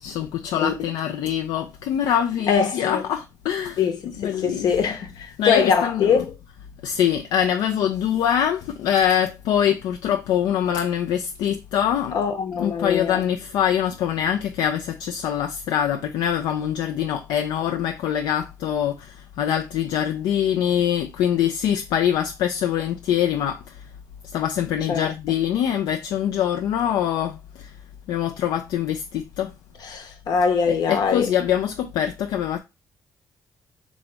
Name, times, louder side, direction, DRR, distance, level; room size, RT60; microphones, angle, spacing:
voice 1, 0.0-3.8 4.2-4.7 5.4-6.2 6.8-12.2 12.6-23.8 24.3-27.7 28.1-29.5 30.7-32.6, left 9 dB, 90° left, 0.4 m, -24 dB
voice 2, 2.5-3.0 3.8-6.3 12.1-13.2 24.9-25.1 29.8-31.3, left 6 dB, 70° left, 0.9 m, -23 dB
4.0 x 3.0 x 3.4 m
cardioid pair, 100°, 7 cm